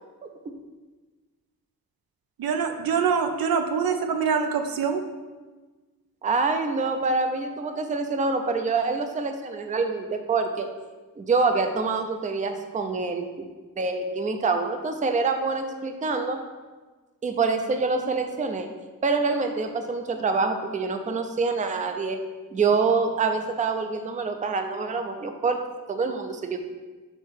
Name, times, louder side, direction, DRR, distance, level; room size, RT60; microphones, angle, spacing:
voice 1, 2.4-5.0, right 6 dB, 85° right, 6 dB, 0.7 m, -24 dB
voice 2, 6.2-10.7 11.2-13.5 13.8-16.4 17.2-18.7 19.0-22.2 22.5-25.6 25.9-26.6, right 4 dB, 20° right, 6 dB, 0.4 m, -26 dB
6.5 x 3.7 x 6.3 m, 1.3 s
wide cardioid pair, 175°, 35 cm